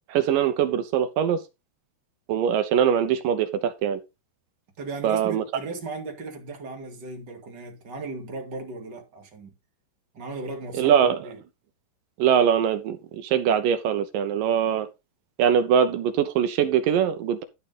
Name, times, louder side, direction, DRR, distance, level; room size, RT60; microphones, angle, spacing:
voice 1, 0.1-1.4 2.3-4.0 5.0-5.4 10.7-11.3 12.2-14.9 15.4-17.4, right 8 dB, 70° right, 2.2 m, -22 dB
voice 2, 4.8-9.5 10.1-11.4, right 3 dB, 30° right, 2.4 m, -36 dB
12.0 x 4.5 x 5.3 m
omnidirectional pair, 4.7 m